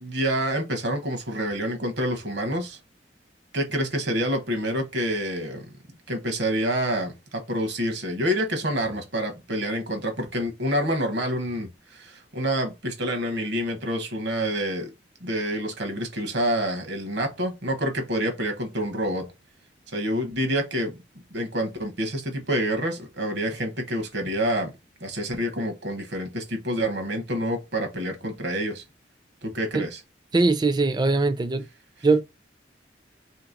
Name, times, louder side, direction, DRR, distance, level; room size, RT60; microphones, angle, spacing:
voice 1, 0.0-2.8 3.5-5.7 6.1-14.9 15.2-19.3 19.9-20.9 21.3-24.7 25.0-28.8 29.4-30.0, equal, 65° right, 1.0 m, -27 dB
voice 2, 30.3-31.6 32.0-32.2, right 3 dB, 25° right, 0.4 m, -21 dB
3.1 x 2.9 x 3.8 m
head